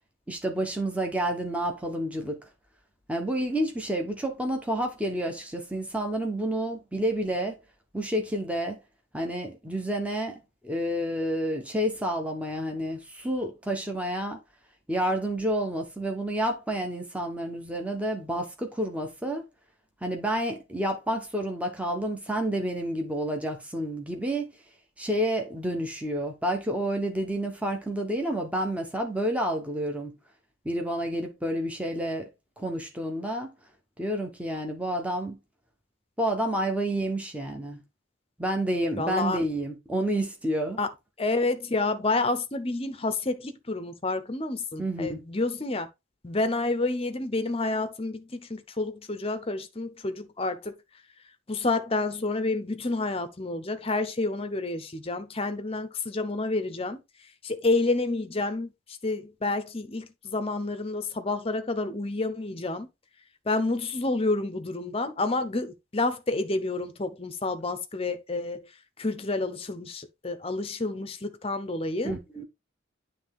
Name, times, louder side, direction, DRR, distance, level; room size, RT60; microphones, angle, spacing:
voice 1, 0.3-2.4 3.1-7.6 7.9-8.8 9.1-14.4 14.9-19.4 20.0-24.5 25.0-30.1 30.6-32.3 32.6-33.5 34.0-35.4 36.2-37.8 38.4-40.8 44.8-45.2 72.0-72.4, right 1 dB, 5° right, 1.1 m, -29 dB
voice 2, 39.0-39.4 40.8-40.9 41.2-45.9 46.2-50.7 51.5-57.0 57.4-58.7 59.0-62.9 63.5-68.7 69.0-72.2, left 2 dB, 30° left, 0.8 m, -29 dB
9.6 x 3.3 x 3.6 m
head